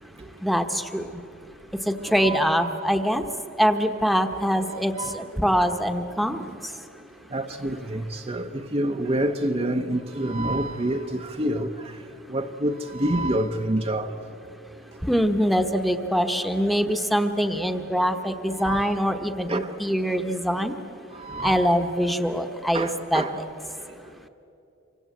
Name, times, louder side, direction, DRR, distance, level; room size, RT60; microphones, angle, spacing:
voice 1, 0.4-1.2 1.8-3.2 3.6-6.9 15.0-20.7 21.4-23.2, equal, ahead, 1.1 m, -24 dB
voice 2, 2.1-2.5 5.0-5.2 7.3-11.7 12.3-14.1 18.6-18.9 19.5-19.7 21.2-21.6 22.7-23.4, right 1 dB, 30° right, 0.9 m, -27 dB
27.5 x 25.0 x 8.4 m
head